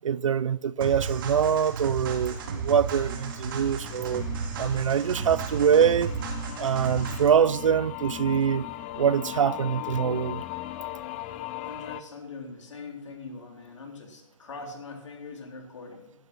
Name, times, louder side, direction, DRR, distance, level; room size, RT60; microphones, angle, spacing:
voice 1, 0.0-4.2 4.6-6.1 6.6-8.7 9.0-10.4, right 8 dB, 85° right, 0.5 m, -24 dB
sound 1, 0.8-7.4, right 5 dB, 45° right, 2.2 m, -34 dB
sound 2, 2.3-12.0, left 14 dB, 20° left, 0.5 m, -39 dB
voice 2, 11.6-16.1, left 4 dB, 75° left, 3.8 m, -42 dB
12.0 x 10.5 x 6.1 m
hypercardioid pair, 155°, 16 cm